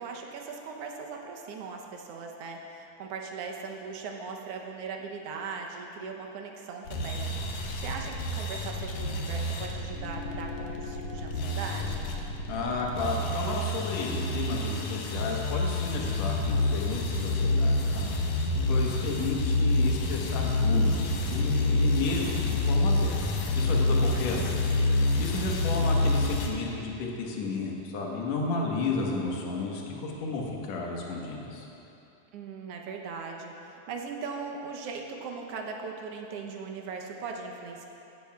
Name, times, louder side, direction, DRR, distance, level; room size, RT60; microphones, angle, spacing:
voice 1, 0.0-12.1 24.1-24.6 32.3-37.8, right 5 dB, 70° right, 1 dB, 1.5 m, -39 dB
sound 1, 6.9-26.5, left 2 dB, 85° left, 2.5 m, -28 dB
sound 2, 9.9-14.7, left 8 dB, 45° left, 1.2 m, -46 dB
voice 2, 12.5-23.2 23.5-24.5 24.9-31.7, left 3 dB, 65° left, -1 dB, 2.3 m, -33 dB
17.0 x 12.5 x 2.3 m, 2.9 s
omnidirectional pair, 3.6 m